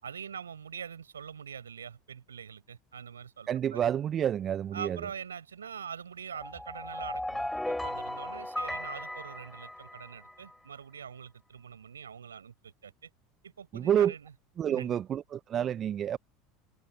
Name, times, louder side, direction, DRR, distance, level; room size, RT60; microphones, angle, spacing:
voice 1, 0.0-3.8 4.7-13.1 13.4-14.3 14.7-15.0, right 7 dB, 80° right, 5.6 m, -44 dB
voice 2, 3.5-5.0 13.7-14.1 14.6-16.2, right 9 dB, 35° right, 0.6 m, -29 dB
sound 1, 6.3-10.3, left 1 dB, 5° left, 4.5 m, -36 dB
figure-of-eight pair, 75°, 0 cm